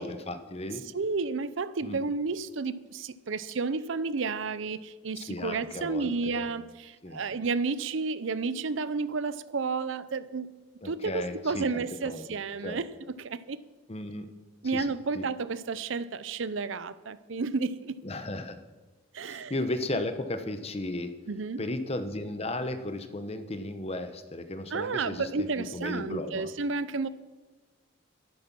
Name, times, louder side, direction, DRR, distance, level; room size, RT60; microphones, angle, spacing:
voice 1, 0.0-0.8 1.8-2.0 5.2-6.5 7.0-7.2 10.8-12.3 12.6-12.8 13.9-14.3 14.6-14.9 15.1-15.3 18.0-18.6 19.2-21.1 21.6-26.5, left 1 dB, 30° left, 9 dB, 1.0 m, -35 dB
voice 2, 0.9-10.5 10.8-12.9 13.2-13.6 14.6-18.0 19.1-19.5 21.3-21.6 24.7-27.1, right 4 dB, 70° right, 15 dB, 0.6 m, -31 dB
12.0 x 11.0 x 6.1 m, 1.3 s
head